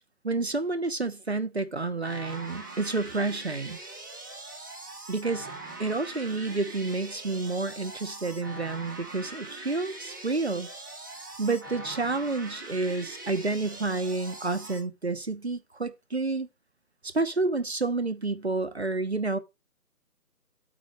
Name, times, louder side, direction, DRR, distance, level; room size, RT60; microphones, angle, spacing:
voice 1, 0.2-3.8 5.1-5.5 5.8-10.7 11.2-16.5 17.0-19.4, right 3 dB, 45° right, 1.1 m, -29 dB
sound 1, 2.0-14.8, right 2 dB, 15° right, 2.1 m, -42 dB
8.9 x 8.9 x 3.3 m
figure-of-eight pair, 165°, 46 cm